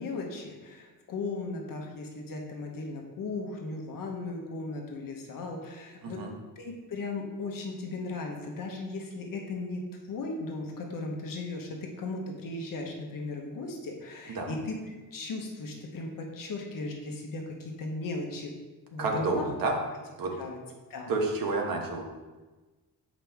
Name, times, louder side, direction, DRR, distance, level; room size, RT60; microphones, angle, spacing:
voice 1, 0.0-6.3 6.6-14.8 15.1-18.5 18.9-19.5 20.4-20.6 20.9-21.1, left 3 dB, 60° left, 1 dB, 1.1 m, -37 dB
voice 2, 19.0-19.7 20.2-20.3 21.1-22.0, right 3 dB, 60° right, 1 dB, 1.2 m, -29 dB
7.5 x 5.0 x 3.5 m, 1.2 s
wide cardioid pair, 170°, 38 cm